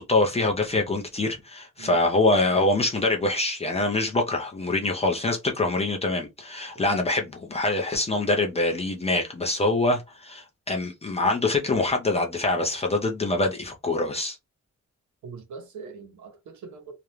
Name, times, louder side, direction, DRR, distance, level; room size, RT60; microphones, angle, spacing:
voice 1, 0.0-14.4, left 2 dB, 20° left, 0.3 m, -24 dB
voice 2, 15.2-16.9, right 5 dB, 75° right, 0.8 m, -42 dB
2.4 x 2.0 x 2.9 m
wide cardioid pair, 180°, 30 cm